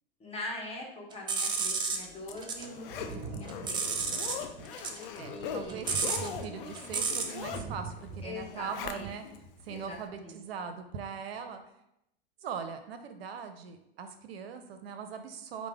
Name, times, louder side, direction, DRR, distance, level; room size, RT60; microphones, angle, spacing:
voice 1, 0.2-3.8 5.3-5.9 8.2-9.1 9.7-10.4, left 2 dB, 20° left, -1 dB, 1.1 m, -43 dB
sound 1, 1.1-2.7 3.0-4.4 4.7-7.4, right 5 dB, 15° right, 0.3 m, -32 dB
Zipper (clothing), 1.8-9.4 9.8-9.9, left 8 dB, 65° left, 0.5 m, -41 dB
Thunder, 2.9-10.2 11.4-11.5, right 4 dB, 45° right, 0.7 m, -45 dB
voice 2, 5.2-9.2 9.6-11.6 12.4-15.7, right 6 dB, 75° right, 8 dB, 0.5 m, -41 dB
4.8 x 2.0 x 3.4 m, 0.81 s
hypercardioid pair, 100°, 31 cm